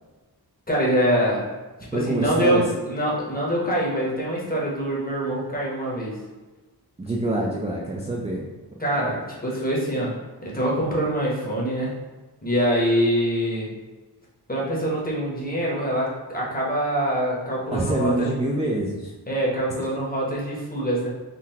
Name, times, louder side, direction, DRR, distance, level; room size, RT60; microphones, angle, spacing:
voice 1, 0.7-1.5 1.9-6.2 8.8-11.9 12.4-13.7 14.5-18.3 19.3-21.1, equal, 20° left, -4 dB, 0.9 m, -24 dB
voice 2, 1.9-2.6 7.0-8.5 17.7-19.1, right 1 dB, 15° right, -3 dB, 0.3 m, -25 dB
3.7 x 2.2 x 2.8 m, 1.2 s
wide cardioid pair, 90°, 41 cm